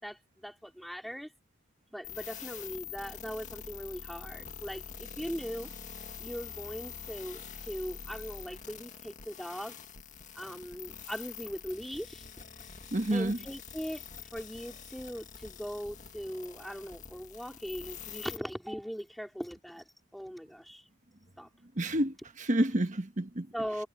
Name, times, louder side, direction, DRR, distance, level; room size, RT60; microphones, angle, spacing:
voice 1, 0.0-1.3 1.9-5.7 6.2-9.8 10.3-12.2 13.1-14.0 14.3-19.8 20.1-20.8 21.4-21.5 23.5-23.9, equal, ahead, 4.6 m, -40 dB
sound 1, 2.0-18.4, left 7 dB, 35° left, 2.1 m, -46 dB
voice 2, 12.9-13.4 21.8-23.5, right 1 dB, 35° right, 1.4 m, -29 dB
head